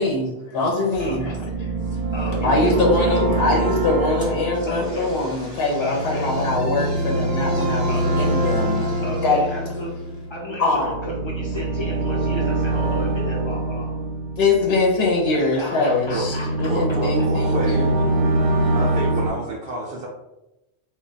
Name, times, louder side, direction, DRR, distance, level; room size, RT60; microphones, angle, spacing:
voice 1, 0.0-1.3 2.4-9.4 10.6-11.0 14.4-18.0, left 2 dB, 65° left, -1 dB, 0.8 m, -22 dB
sound 1, 0.9-15.2 15.7-19.3, right 2 dB, 90° right, 0.9 m, -24 dB
voice 2, 1.0-1.5 2.1-3.4 4.7-5.1 5.8-6.3 7.9-8.2 9.0-9.9 10.3-13.9 15.3-17.3, left 1 dB, 35° left, -3 dB, 0.4 m, -33 dB
sound 2, 4.1-10.3, equal, 20° left, 0.9 m, -44 dB
voice 3, 16.7-17.8 18.8-20.1, right 2 dB, 60° right, -2 dB, 0.7 m, -29 dB
2.2 x 2.2 x 3.8 m, 0.93 s
omnidirectional pair, 1.2 m